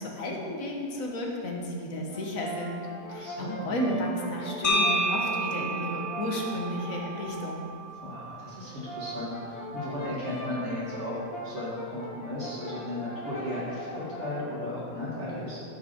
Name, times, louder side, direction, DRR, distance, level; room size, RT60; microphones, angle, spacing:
voice 1, 0.0-2.8 3.1-7.6, equal, 65° left, -1 dB, 1.6 m, -33 dB
Brass instrument, 2.1-7.7 8.6-14.5, equal, 80° left, 2.2 m, -40 dB
voice 2, 3.1-3.8 7.9-15.6, left 1 dB, 50° right, -7 dB, 2.0 m, -35 dB
sound 1, 4.6-8.7, right 1 dB, 35° left, 0.6 m, -31 dB
13.0 x 5.1 x 4.4 m, 2.8 s
omnidirectional pair, 1.6 m